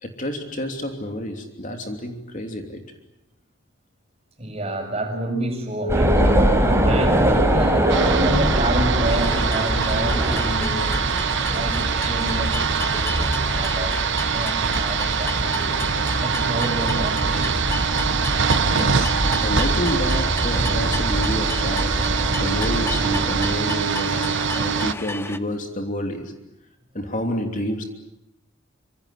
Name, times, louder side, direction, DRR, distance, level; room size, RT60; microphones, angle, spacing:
voice 1, 0.0-2.8 18.7-19.1 19.4-22.0 22.4-26.3 26.9-27.8, left 1 dB, 40° left, 3 dB, 3.1 m, -29 dB
voice 2, 4.4-6.5 6.9-10.9 11.5-15.7 16.2-17.7, right 1 dB, 30° right, 4 dB, 6.8 m, -29 dB
sound 1, 5.9-23.5, right 1 dB, 15° right, 4.3 m, -24 dB
sound 2, 7.9-24.9, right 6 dB, 60° right, 0.9 m, -24 dB
sound 3, 9.0-25.4, left 2 dB, 10° left, 1.0 m, -33 dB
26.5 x 26.0 x 8.4 m, 0.88 s
head